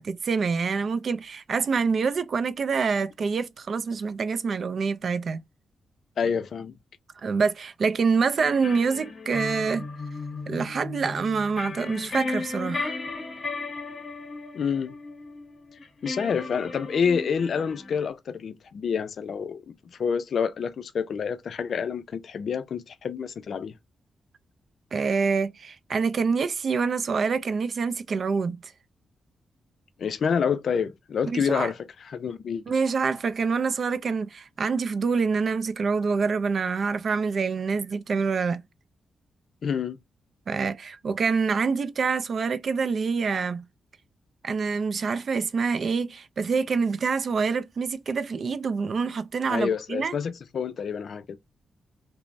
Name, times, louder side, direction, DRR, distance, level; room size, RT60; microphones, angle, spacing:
voice 1, 0.0-5.4 7.2-9.9 10.5-12.9 24.9-28.7 31.2-31.7 32.7-38.6 40.5-43.7 44.4-50.2, right 5 dB, 50° right, 0.3 m, -26 dB
voice 2, 6.2-6.8 14.5-14.9 16.0-19.6 19.9-23.7 30.0-32.6 39.6-40.0 49.5-51.4, left 6 dB, 60° left, 0.3 m, -28 dB
sound 1, 8.4-18.1, left 3 dB, 40° left, 0.7 m, -36 dB
3.1 x 2.0 x 2.4 m
cardioid pair, 120°, 0 cm